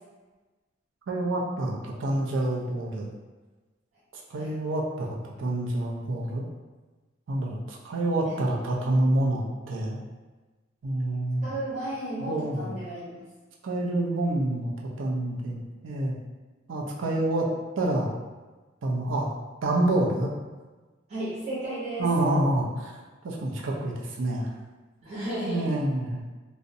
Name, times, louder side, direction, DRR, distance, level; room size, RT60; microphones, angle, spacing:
voice 1, 1.1-3.1 4.1-6.4 7.3-10.0 10.8-11.5 12.2-12.8 13.6-14.7 15.0-16.2 16.7-17.5 17.8-18.1 18.8-19.3 19.6-20.3 22.0-23.0 23.2-24.5 25.5-26.2, right 1 dB, 75° right, -2 dB, 0.4 m, -27 dB
voice 2, 11.4-13.2 21.1-22.1 25.0-25.7, right 1 dB, 35° right, -12 dB, 0.8 m, -33 dB
2.5 x 2.0 x 2.6 m, 1.3 s
head